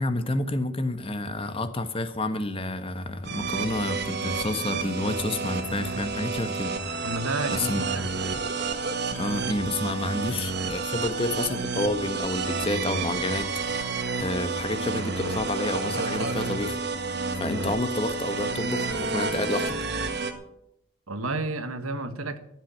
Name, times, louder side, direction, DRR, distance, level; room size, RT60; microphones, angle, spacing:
voice 1, 0.0-7.0 7.5-7.8 9.1-19.8, left 2 dB, 25° left, 9 dB, 1.1 m, -30 dB
sound 1, 3.2-20.3, right 4 dB, 50° right, 1.7 m, -30 dB
voice 2, 7.0-8.1 21.1-22.4, right 2 dB, 85° right, 9 dB, 1.5 m, -31 dB
14.0 x 8.2 x 9.1 m, 0.78 s
head